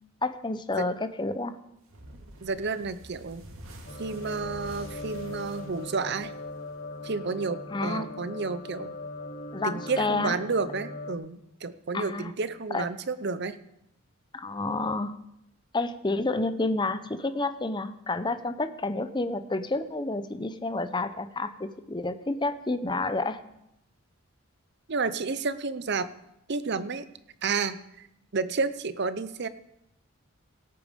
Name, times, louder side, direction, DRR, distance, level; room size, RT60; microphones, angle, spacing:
voice 1, 0.2-1.6 7.7-8.1 9.5-10.4 11.9-12.3 12.7-12.9 14.3-15.1 15.7-23.4, left 2 dB, 20° left, 11 dB, 0.6 m, -29 dB
sound 1, 1.9-7.0, right 1 dB, 80° right, 2.0 m, -48 dB
voice 2, 2.4-3.4 4.0-6.3 7.0-8.9 9.6-13.6 24.9-26.1 26.5-27.0 27.4-28.1 28.3-29.5, right 4 dB, 55° right, 13 dB, 0.7 m, -31 dB
sound 2, 3.9-11.1, left 2 dB, 50° left, 1.2 m, -40 dB
17.5 x 8.6 x 5.2 m, 0.83 s
head